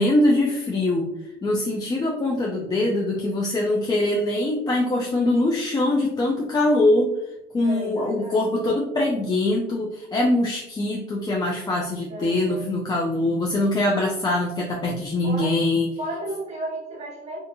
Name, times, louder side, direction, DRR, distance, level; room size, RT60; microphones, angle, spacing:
voice 1, 0.0-7.1 7.5-15.9, left 2 dB, 25° left, -1 dB, 0.4 m, -23 dB
voice 2, 7.6-8.5 12.1-12.7 15.2-15.6 16.0-17.4, right 1 dB, 40° right, -1 dB, 0.9 m, -33 dB
2.6 x 2.5 x 2.6 m, 0.86 s
cardioid pair, 110°, 17 cm